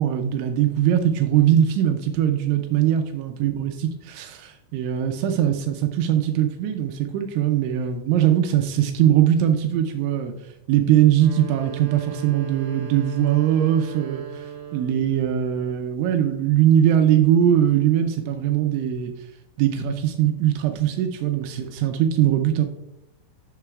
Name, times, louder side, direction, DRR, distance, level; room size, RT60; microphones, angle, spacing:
voice 1, 0.0-10.3 10.7-14.5 14.7-19.1 19.6-22.7, right 10 dB, 85° right, 6 dB, 2.7 m, -21 dB
sound 1, 11.1-15.1, right 9 dB, 65° right, 0.5 m, -37 dB
11.5 x 6.8 x 2.3 m, 0.89 s
omnidirectional pair, 6.0 m